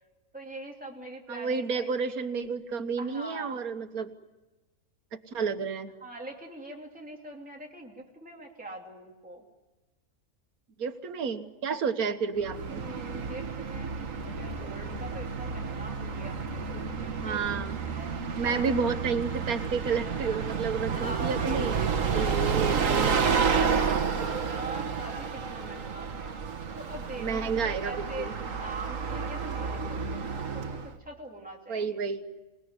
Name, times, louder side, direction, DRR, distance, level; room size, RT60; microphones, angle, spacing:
voice 1, 0.3-1.9 3.0-3.6 6.0-9.4 12.6-13.9 14.2-18.7 19.8-20.4 20.9-22.3 23.1-23.3 23.7-26.3 26.8-32.0, right 2 dB, 5° right, 0 dB, 2.9 m, -43 dB
voice 2, 1.3-4.1 5.3-5.9 10.8-12.8 17.2-17.8 18.4-21.7 22.1-23.2 27.2-28.3 31.7-32.2, right 5 dB, 85° right, 7 dB, 1.8 m, -31 dB
Bus, 12.4-30.9, right 5 dB, 65° right, 1.7 m, -30 dB
27.5 x 19.5 x 9.6 m, 1.2 s
omnidirectional pair, 1.5 m